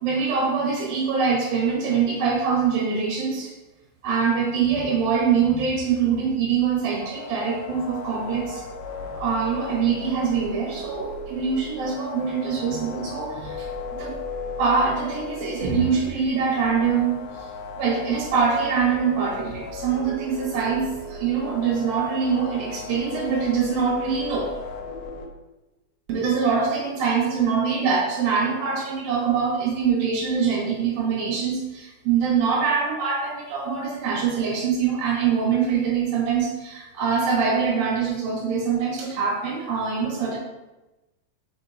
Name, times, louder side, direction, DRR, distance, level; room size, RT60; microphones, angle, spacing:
voice 1, 0.0-3.5 4.0-8.6 9.1-13.7 14.0-14.1 14.6-17.2 17.8-24.5 26.1-40.4, right 6 dB, 65° right, -3 dB, 3.1 m, -24 dB
sound 1, 7.0-25.3, left 3 dB, 75° left, 2.0 m, -36 dB
5.8 x 5.7 x 4.1 m, 1.1 s
omnidirectional pair, 4.9 m